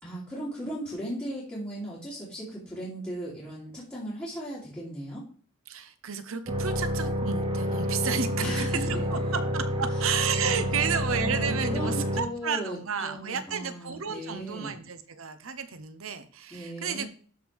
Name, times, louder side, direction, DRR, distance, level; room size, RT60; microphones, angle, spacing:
voice 1, 0.0-5.2 8.4-9.4 9.9-10.0 10.3-14.7 16.5-17.1, right 1 dB, 10° left, -9 dB, 3.3 m, -37 dB
voice 2, 5.7-8.6 9.1-17.1, right 6 dB, 80° right, 10 dB, 0.9 m, -32 dB
sound 1, 6.5-12.2, equal, 30° right, 1.7 m, -29 dB
12.5 x 5.0 x 3.5 m, 0.42 s
head